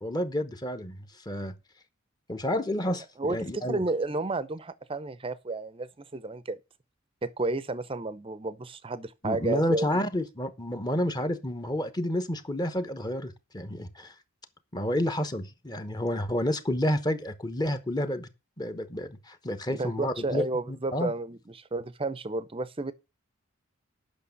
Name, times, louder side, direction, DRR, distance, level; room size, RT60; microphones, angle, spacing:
voice 1, 0.0-1.5 2.3-3.8 9.2-14.1 14.7-18.3 18.6-21.1, left 1 dB, 20° left, 0.9 m, -30 dB
voice 2, 3.2-6.6 7.2-10.0 19.7-22.9, right 2 dB, 25° right, 0.7 m, -32 dB
8.5 x 6.0 x 7.0 m
head